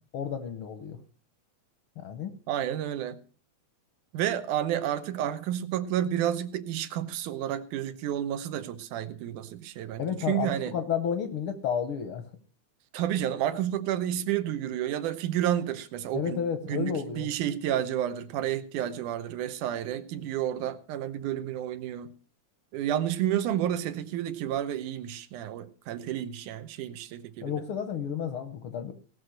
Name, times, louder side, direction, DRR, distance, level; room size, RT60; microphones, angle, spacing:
voice 1, 0.1-1.0 2.0-2.3 10.0-12.2 16.1-17.3 27.4-28.9, left 7 dB, 65° left, 8 dB, 1.4 m, -31 dB
voice 2, 2.5-3.2 4.1-10.7 12.9-16.4 16.7-22.1 22.7-27.5, right 11 dB, 85° right, 11 dB, 2.4 m, -30 dB
17.5 x 6.3 x 6.4 m, 0.41 s
omnidirectional pair, 3.5 m